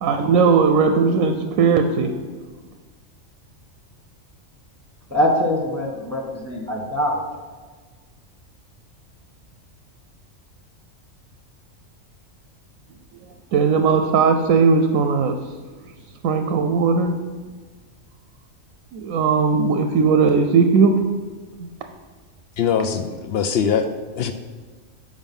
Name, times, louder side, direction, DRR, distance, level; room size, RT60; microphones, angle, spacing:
voice 1, 0.0-2.3 13.5-15.4 16.2-17.1 18.9-21.0 21.6-21.7, right 5 dB, 90° right, 6 dB, 1.0 m, -18 dB
voice 2, 5.1-7.2, left 1 dB, 10° right, 0 dB, 1.2 m, -23 dB
voice 3, 22.6-23.9 24.1-24.3, left 7 dB, 65° left, 8 dB, 0.6 m, -22 dB
7.3 x 5.3 x 5.4 m, 1.4 s
omnidirectional pair, 1.4 m